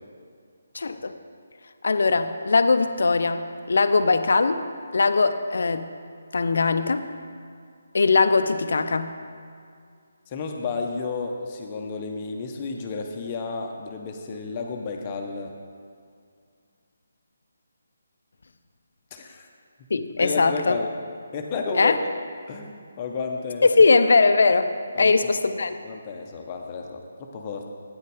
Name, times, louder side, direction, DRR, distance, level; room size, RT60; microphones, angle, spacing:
voice 1, 0.7-1.1 1.8-4.6 4.9-5.9 6.3-7.1 7.9-9.1 19.9-20.8 21.8-22.0 23.6-24.7 25.0-25.8, left 4 dB, 65° left, 10 dB, 0.5 m, -20 dB
voice 2, 10.3-15.5 19.1-19.5 20.2-20.9 21.3-22.0 22.5-23.7 24.9-25.3 25.6-27.7, left 4 dB, 30° left, 2 dB, 0.8 m, -32 dB
8.9 x 6.6 x 4.9 m, 2.2 s
figure-of-eight pair, 150°, 0 cm